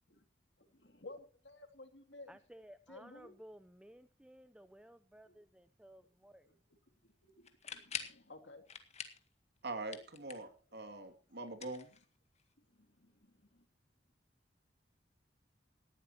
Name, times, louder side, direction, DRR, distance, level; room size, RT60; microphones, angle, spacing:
voice 1, 0.6-2.4 2.9-3.4 5.2-5.4 6.4-6.8 7.0-8.6 10.7-10.8 11.3-11.4 12.6-13.7, left 2 dB, 70° left, 6 dB, 2.9 m, -56 dB
voice 2, 2.3-6.5, equal, 5° right, 12 dB, 0.5 m, -57 dB
sound 1, 7.4-8.2 8.7-9.3 9.6-10.6 11.5-12.4, left 7 dB, 40° left, 1.9 m, -45 dB
voice 3, 9.6-11.9, right 2 dB, 65° right, 7 dB, 2.7 m, -43 dB
19.0 x 14.0 x 3.0 m, 0.36 s
head